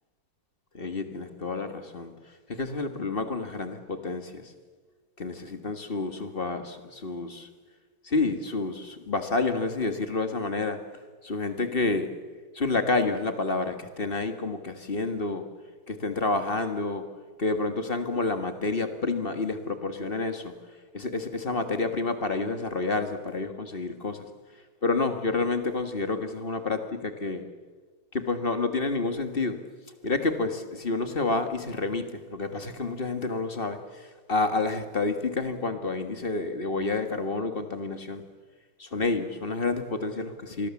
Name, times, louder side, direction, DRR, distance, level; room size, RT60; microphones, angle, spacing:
voice 1, 0.7-2.1 2.5-4.5 5.2-7.5 8.0-10.8 11.2-12.1 12.5-15.5 15.9-17.1 17.4-20.5 20.9-24.3 24.8-27.5 28.1-29.6 30.0-38.2 38.8-40.7, left 3 dB, 30° left, 8 dB, 1.7 m, -29 dB
26.0 x 20.5 x 7.2 m, 1.4 s
omnidirectional pair, 2.2 m